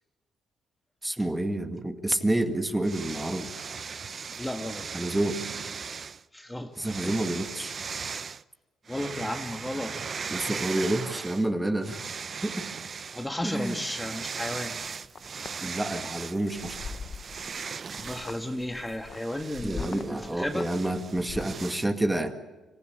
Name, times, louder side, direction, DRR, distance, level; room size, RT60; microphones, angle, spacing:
voice 1, 1.0-3.5 4.9-5.4 6.8-7.7 10.3-12.0 12.4-12.7 13.4-13.8 15.6-16.8 19.6-22.3, right 1 dB, 10° right, 6 dB, 2.0 m, -29 dB
sound 1, 2.8-6.2 6.8-8.4 8.9-11.5 11.8-21.9, right 5 dB, 45° right, 0.6 m, -38 dB
voice 2, 4.4-5.0 6.3-7.3 8.9-9.9 13.1-14.8 15.3-15.5 17.9-20.7, left 1 dB, 10° left, 4 dB, 1.6 m, -34 dB
sound 2, 14.8-15.5 16.0-16.3 16.6-17.7 18.0-21.6, left 5 dB, 45° left, 1.1 m, -41 dB
26.0 x 15.5 x 8.7 m, 1.2 s
cardioid pair, 90°, 0 cm